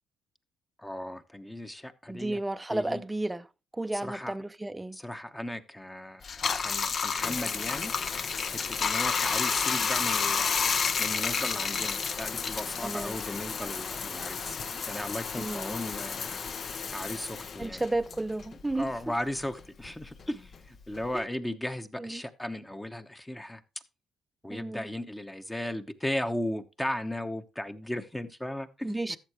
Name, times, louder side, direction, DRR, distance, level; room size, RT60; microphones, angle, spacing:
voice 1, 0.8-2.4 2.7-3.0 4.0-4.3 4.9-6.2 6.6-7.9 8.4-10.7 11.0-14.6 14.9-16.4 16.9-17.8 18.7-23.6 24.4-29.2, left 1 dB, 10° left, 1.0 m, -36 dB
voice 2, 2.1-3.5 3.7-5.0 12.8-13.1 15.4-15.7 17.6-18.9 21.1-21.3 22.0-22.2 24.5-24.9 28.8-29.2, right 2 dB, 10° right, 0.6 m, -32 dB
Bathtub (filling or washing), 6.2-19.0 19.4-21.2, left 6 dB, 50° left, 0.8 m, -31 dB
13.0 x 7.3 x 3.0 m
cardioid pair, 90°, 0 cm